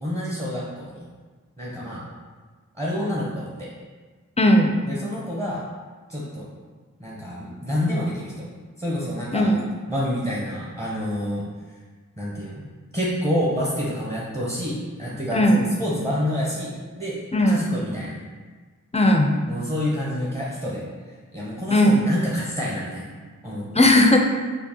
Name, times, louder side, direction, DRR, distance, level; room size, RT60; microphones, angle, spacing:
voice 1, 0.0-1.0 1.6-2.1 2.8-3.7 4.9-5.6 6.1-6.5 7.0-8.5 8.8-9.5 9.9-11.5 12.2-12.6 12.9-17.2 17.4-18.1 19.5-20.8 21.3-23.1 23.4-23.7, equal, 20° right, -6 dB, 0.7 m, -28 dB
voice 2, 4.4-4.7 9.3-9.7 15.3-15.7 17.3-17.6 18.9-19.3 21.7-22.1 23.7-24.2, left 1 dB, 20° left, 2 dB, 0.4 m, -17 dB
5.0 x 2.1 x 2.8 m, 1.4 s
wide cardioid pair, 55°, 33 cm